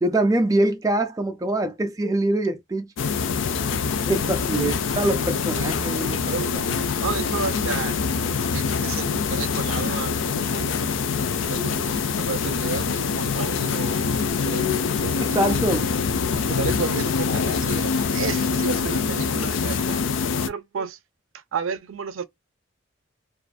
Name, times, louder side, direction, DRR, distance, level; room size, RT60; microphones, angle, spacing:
voice 1, 0.0-2.9 4.1-6.2 15.2-15.9, right 1 dB, 15° right, 0.3 m, -24 dB
sound 1, 3.0-20.5, left 5 dB, 70° left, 0.4 m, -25 dB
voice 2, 5.5-10.8 11.5-14.7 15.0-15.4 16.5-20.0 20.5-21.0 21.3-22.2, right 6 dB, 80° right, 0.4 m, -32 dB
2.5 x 2.4 x 2.2 m
head